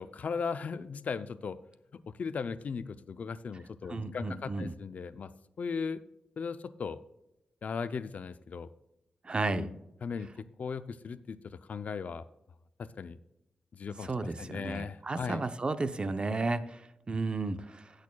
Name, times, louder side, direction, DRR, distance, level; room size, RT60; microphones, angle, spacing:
voice 1, 0.0-1.6 1.9-5.3 5.6-6.0 6.4-7.0 7.6-8.7 9.5-10.3 10.6-12.2 12.8-13.2 13.7-15.4, left 5 dB, 60° left, 13 dB, 0.5 m, -37 dB
voice 2, 3.9-4.7 9.2-9.7 14.0-17.9, right 3 dB, 35° right, 11 dB, 0.6 m, -33 dB
18.5 x 6.4 x 2.3 m, 0.86 s
cardioid pair, 75°, 3 cm